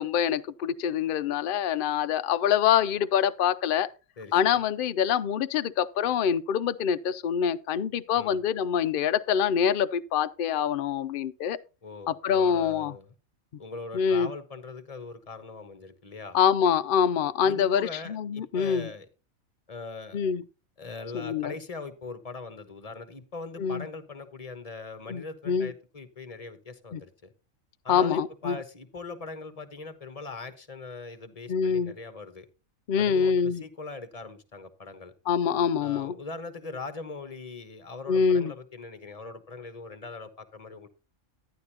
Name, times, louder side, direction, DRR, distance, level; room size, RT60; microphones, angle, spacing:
voice 1, 0.0-3.9 4.3-11.6 12.1-12.9 13.9-14.3 16.3-18.9 20.1-20.4 21.1-21.5 23.6-23.9 25.1-25.7 26.9-27.0 27.9-28.6 31.5-31.9 32.9-33.6 35.3-36.1 38.1-38.5, left 7 dB, 60° left, 0.5 m, -25 dB
voice 2, 4.2-4.6 8.1-8.4 11.8-13.1 13.6-16.4 17.4-19.1 19.7-20.2 20.8-27.3 27.8-32.5 33.0-35.1 35.8-40.9, left 4 dB, 30° left, 1.1 m, -41 dB
11.5 x 10.5 x 2.8 m
omnidirectional pair, 1.5 m